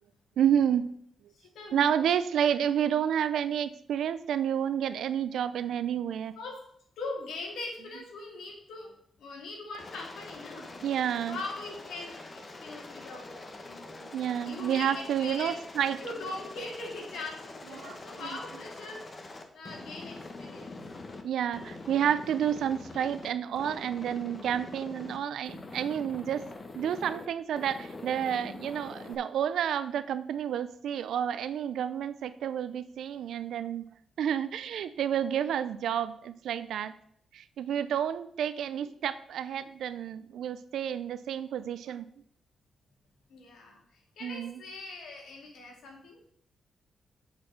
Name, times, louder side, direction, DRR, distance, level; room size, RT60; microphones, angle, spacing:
voice 1, 0.4-0.9 1.7-6.3 10.8-11.4 14.0-16.0 17.7-18.3 21.2-26.4 26.7-33.9 34.2-36.9 37.3-42.0 44.2-44.6, right 9 dB, 80° right, 13 dB, 0.5 m, -30 dB
voice 2, 1.4-2.1 6.4-6.6 7.0-8.9 9.2-10.7 11.3-12.2 12.6-13.9 14.4-15.5 16.0-19.0 19.5-20.8 43.3-46.2, left 2 dB, 80° left, 0 dB, 2.4 m, -41 dB
Aircraft, 9.7-21.2 21.5-23.3 23.6-25.2 25.5-27.3 27.6-29.2, left 2 dB, 40° left, 1.2 m, -44 dB
6.9 x 4.4 x 6.6 m, 0.68 s
cardioid pair, 60°, 0 cm